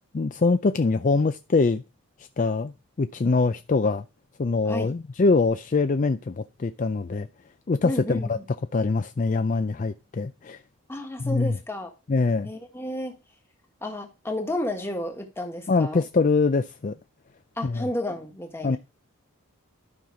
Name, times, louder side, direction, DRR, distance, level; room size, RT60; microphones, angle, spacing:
voice 1, 0.1-1.8 2.2-4.0 4.4-7.3 7.7-8.4 8.7-10.6 11.2-11.5 12.1-12.5 15.7-16.9 17.6-17.8 18.6-18.8, left 3 dB, 40° left, 0.4 m, -23 dB
voice 2, 7.8-8.4 10.9-11.9 12.4-13.2 13.8-16.0 17.6-18.8, left 1 dB, 10° left, 1.5 m, -32 dB
12.0 x 5.7 x 4.9 m
head